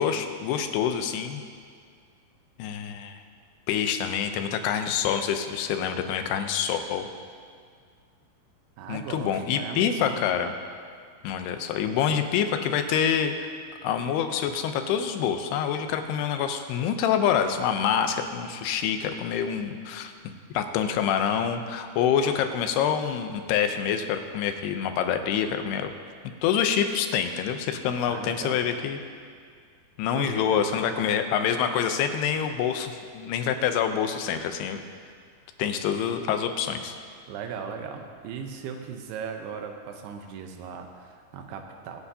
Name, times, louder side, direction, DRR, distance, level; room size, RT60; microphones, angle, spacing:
voice 1, 0.0-1.4 2.6-3.2 3.7-7.1 8.9-10.5 11.2-13.5 13.8-25.9 26.4-29.0 30.0-34.8 35.6-37.0, left 8 dB, 85° left, 7 dB, 2.8 m, -26 dB
voice 2, 8.8-10.2 28.1-28.6 30.1-30.9 37.3-42.0, right 6 dB, 85° right, 4 dB, 2.9 m, -38 dB
25.5 x 9.4 x 2.8 m, 2.1 s
omnidirectional pair, 4.6 m